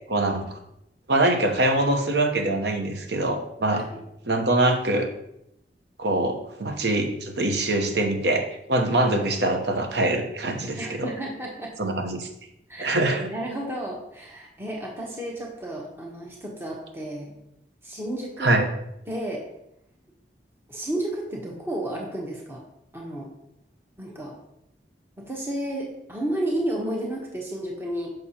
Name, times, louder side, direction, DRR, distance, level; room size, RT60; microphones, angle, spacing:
voice 1, 0.1-0.6 1.1-3.8 4.3-5.1 6.0-11.1 11.8-12.3 12.8-13.3 18.4-18.6, right 2 dB, 75° right, 4 dB, 0.9 m, -24 dB
voice 2, 3.7-4.0 10.8-11.8 12.7-12.9 13.3-17.3 17.8-18.7 19.1-19.4 20.7-22.6 22.9-23.3 24.0-24.4 25.2-28.1, right 1 dB, 15° right, -2 dB, 1.0 m, -32 dB
6.4 x 6.4 x 2.9 m, 0.80 s
head